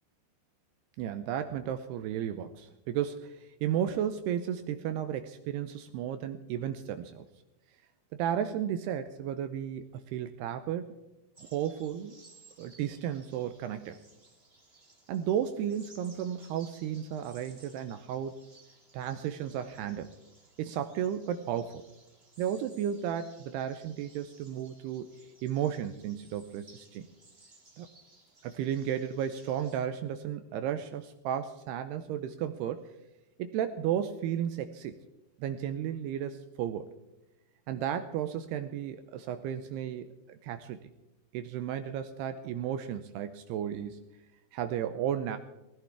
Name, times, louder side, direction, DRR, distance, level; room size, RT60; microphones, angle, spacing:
voice 1, 1.0-7.3 8.1-11.0 11.4-12.2 12.6-14.0 15.1-18.4 18.9-20.1 20.6-21.8 22.4-25.1 25.4-27.1 27.8-27.9 28.4-32.9 33.4-35.0 35.4-36.9 37.7-40.9 41.3-44.0 44.5-45.4, right 9 dB, 85° right, 9 dB, 2.4 m, -34 dB
sound 1, 11.3-29.8, right 2 dB, 30° right, 1.2 m, -60 dB
19.5 x 16.5 x 3.5 m, 0.97 s
omnidirectional pair, 5.3 m